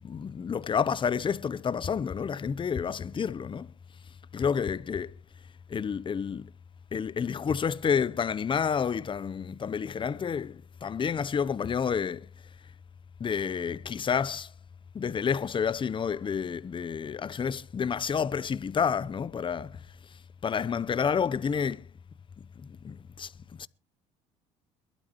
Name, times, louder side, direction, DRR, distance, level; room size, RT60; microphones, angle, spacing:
voice 1, 0.0-3.7 4.3-5.1 5.7-6.5 6.9-12.3 13.2-14.5 14.9-19.8 20.4-21.9 22.6-23.3 23.6-23.7, left 6 dB, 30° left, 0.7 m, -29 dB
22.0 x 12.5 x 3.0 m
supercardioid pair, 75°, 16 cm